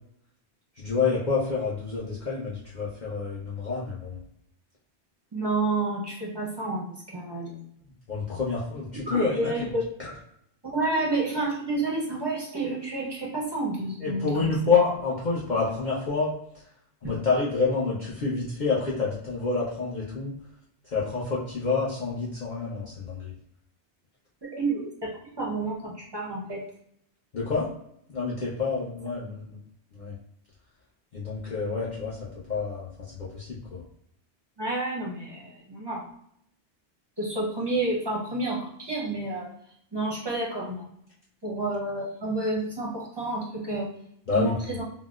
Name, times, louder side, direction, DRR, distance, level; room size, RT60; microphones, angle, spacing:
voice 1, 0.8-4.2 8.1-9.5 10.0-10.1 14.0-16.6 17.0-20.3 20.8-23.3 27.3-27.7 28.1-29.6 29.9-30.2 31.1-33.9 44.3-44.6, left 4 dB, 50° left, -7 dB, 0.7 m, -28 dB
voice 2, 5.3-7.6 9.1-9.8 10.6-14.5 17.0-17.1 24.4-26.6 34.6-36.0 37.2-39.5 39.9-40.9 41.4-43.9 44.3-44.8, right 2 dB, 30° right, -3 dB, 0.5 m, -30 dB
3.7 x 2.0 x 2.3 m, 0.71 s
omnidirectional pair, 1.1 m